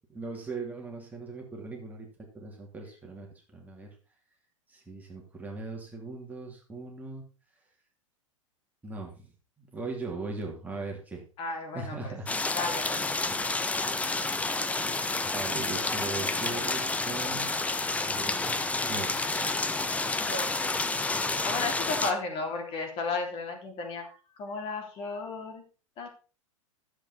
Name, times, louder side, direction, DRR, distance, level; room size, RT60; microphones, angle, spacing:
voice 1, 0.1-2.1 2.3-4.0 4.7-7.2 8.8-11.2 11.7-12.3 13.2-13.5 15.3-17.6 18.0-19.1, right 3 dB, 10° right, 0 dB, 2.8 m, -39 dB
voice 2, 11.4-12.1 12.5-13.5 20.3-20.6 21.4-25.6 26.0-26.1, left 3 dB, 35° left, 3 dB, 3.4 m, -34 dB
sound 1, 12.3-22.1, left 3 dB, 10° left, 1.0 m, -30 dB
13.5 x 8.0 x 4.4 m, 0.35 s
figure-of-eight pair, 95°, 17 cm